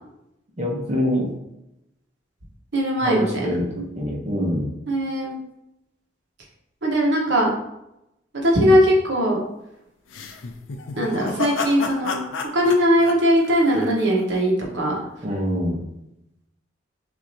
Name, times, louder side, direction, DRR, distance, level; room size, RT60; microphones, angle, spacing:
voice 1, 0.6-1.3 3.0-4.7 15.2-15.8, equal, 35° right, -1 dB, 0.9 m, -25 dB
voice 2, 2.7-3.5 4.9-5.3 6.8-7.5 8.3-9.4 11.0-12.2 12.5-15.0, equal, 65° right, -2 dB, 1.2 m, -20 dB
sound 1, 10.1-14.2, left 4 dB, 90° left, 0.5 m, -31 dB
6.1 x 2.8 x 2.8 m, 0.86 s
head